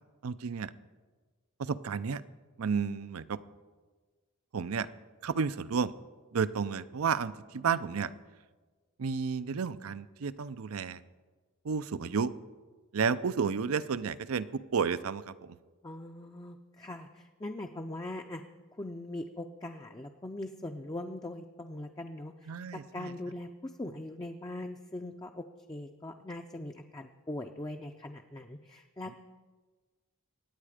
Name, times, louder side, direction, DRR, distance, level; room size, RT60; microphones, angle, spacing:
voice 1, 0.2-0.7 1.6-2.2 2.6-3.4 4.5-4.9 5.2-5.9 6.3-8.1 9.0-11.0 11.6-12.3 12.9-15.6 22.5-23.1, right 6 dB, 80° right, 14 dB, 0.5 m, -32 dB
voice 2, 15.8-18.4 18.8-29.2, left 1 dB, 15° left, 3 dB, 0.5 m, -41 dB
23.5 x 9.0 x 5.0 m, 1.4 s
head